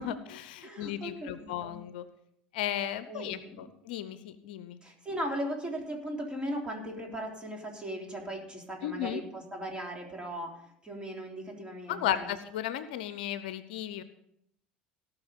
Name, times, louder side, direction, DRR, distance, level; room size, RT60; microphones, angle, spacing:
voice 1, 0.0-2.1 2.5-4.8 8.8-9.2 11.9-14.0, left 11 dB, 70° left, 13 dB, 0.7 m, -35 dB
voice 2, 0.6-1.8 3.1-3.6 4.8-12.3, right 1 dB, 20° right, 1 dB, 3.4 m, -38 dB
17.0 x 6.1 x 5.2 m, 0.75 s
hypercardioid pair, 70°, 5 cm